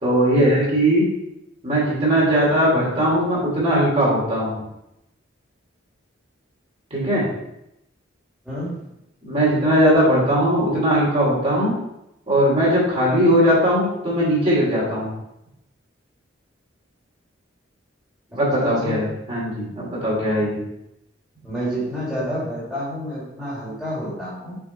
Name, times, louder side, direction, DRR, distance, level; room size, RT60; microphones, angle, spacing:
voice 1, 0.0-1.1 1.6-4.6 6.9-7.2 9.2-11.7 12.3-15.1 18.3-20.6, equal, 30° right, -6 dB, 2.8 m, -19 dB
voice 2, 8.4-8.8 18.3-19.0 21.4-24.6, equal, 5° right, -10 dB, 2.3 m, -29 dB
6.4 x 4.9 x 4.4 m, 0.84 s
head